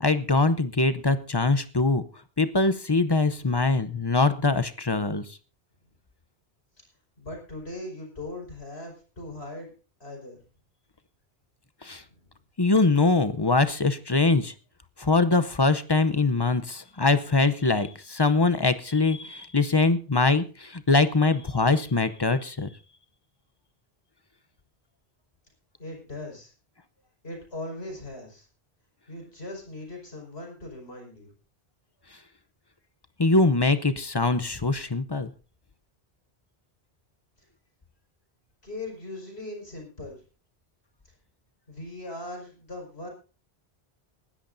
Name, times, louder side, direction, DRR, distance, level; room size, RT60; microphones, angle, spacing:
voice 1, 0.0-2.0 2.4-5.2 11.8-12.0 12.6-14.5 15.0-22.7 33.2-35.3, left 3 dB, 25° left, 12 dB, 0.7 m, -23 dB
voice 2, 3.4-3.9 7.2-9.7 10.0-10.4 12.1-12.3 25.8-26.5 27.2-28.5 29.1-31.3 38.6-40.2 41.7-43.1, left 2 dB, 75° left, 1 dB, 5.5 m, -39 dB
20.5 x 13.5 x 2.7 m, 0.36 s
omnidirectional pair, 1.1 m